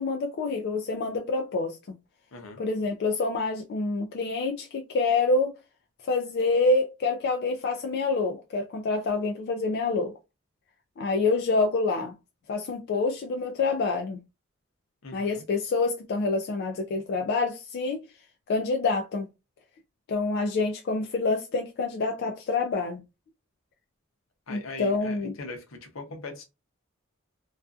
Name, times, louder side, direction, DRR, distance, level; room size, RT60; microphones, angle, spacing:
voice 1, 0.0-1.8 2.6-5.5 6.1-10.1 11.0-12.1 12.5-14.2 15.1-18.0 18.5-19.3 20.1-23.0 24.5-25.3, left 3 dB, 55° left, 0.3 m, -27 dB
voice 2, 2.3-2.6 15.0-15.5 24.5-26.4, left 2 dB, 75° left, 0.7 m, -40 dB
2.4 x 2.3 x 2.3 m
head